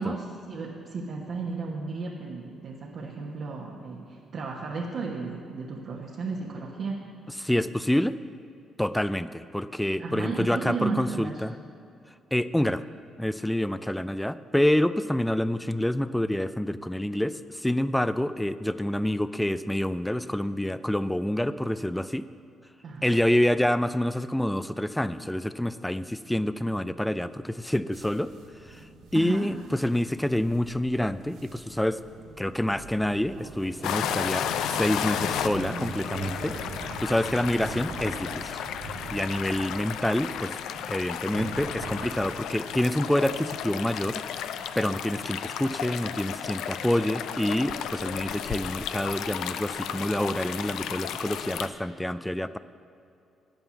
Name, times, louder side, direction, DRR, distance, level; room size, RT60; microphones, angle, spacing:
voice 1, 0.0-7.0 10.0-11.4 22.8-23.2 29.1-29.5, right 4 dB, 60° right, -3 dB, 1.3 m, -34 dB
voice 2, 7.4-8.2 8.8-11.5 12.3-12.8 13.2-22.2 23.0-28.3 28.7-28.8 29.1-32.0 32.4-36.5 37.0-38.6 39.1-40.5 40.9-44.2 44.8-52.6, left 1 dB, 5° left, 14 dB, 0.4 m, -27 dB
sound 1, 27.9-43.6, right 3 dB, 90° right, 1.7 m, -42 dB
sound 2, 33.8-51.7, left 9 dB, 85° left, 0.5 m, -33 dB
9.4 x 9.0 x 7.1 m, 2.6 s
cardioid pair, 90°, 0 cm